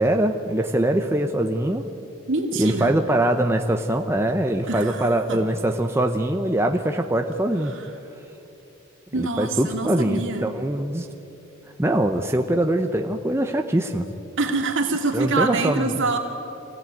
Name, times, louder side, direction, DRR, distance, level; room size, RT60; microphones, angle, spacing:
voice 1, 0.0-1.8 2.6-7.7 9.2-11.1 11.8-14.1 15.1-16.0, right 1 dB, 15° right, 4 dB, 0.8 m, -23 dB
voice 2, 2.3-2.9 4.7-5.4 7.6-7.9 9.1-10.4 14.4-16.2, right 3 dB, 65° right, 2 dB, 2.8 m, -25 dB
24.5 x 16.0 x 9.2 m, 2.9 s
head